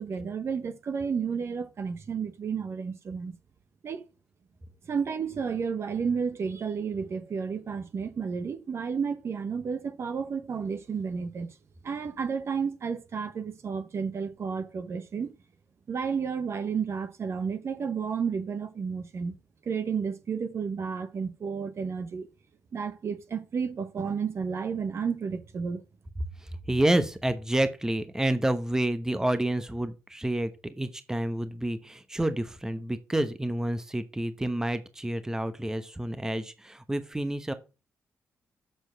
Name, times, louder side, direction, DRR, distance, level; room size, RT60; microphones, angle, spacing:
voice 1, 0.0-3.3 3.8-4.0 4.9-11.5 11.8-15.3 15.9-19.3 19.6-22.3 22.7-25.8, right 6 dB, 55° right, 1.1 m, -32 dB
voice 2, 26.4-37.5, right 1 dB, 10° right, 1.0 m, -29 dB
7.7 x 4.5 x 6.4 m
cardioid pair, 75°, 5 cm